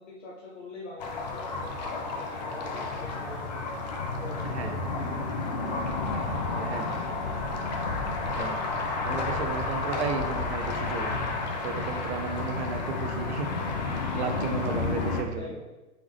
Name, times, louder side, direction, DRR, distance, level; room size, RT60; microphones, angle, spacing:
voice 1, 0.0-3.7 4.2-5.3 6.3-7.4 14.5-15.0 15.2-15.6, left 2 dB, 55° left, -3 dB, 0.8 m, -44 dB
sound 1, 1.0-15.2, left 3 dB, 30° left, 0.4 m, -31 dB
voice 2, 4.4-4.8 6.6-6.9 8.3-8.6 9.0-11.2 11.6-13.5 14.1-15.5, right 5 dB, 50° right, 5 dB, 0.7 m, -34 dB
3.8 x 3.5 x 3.3 m, 1.1 s
hypercardioid pair, 130°, 43 cm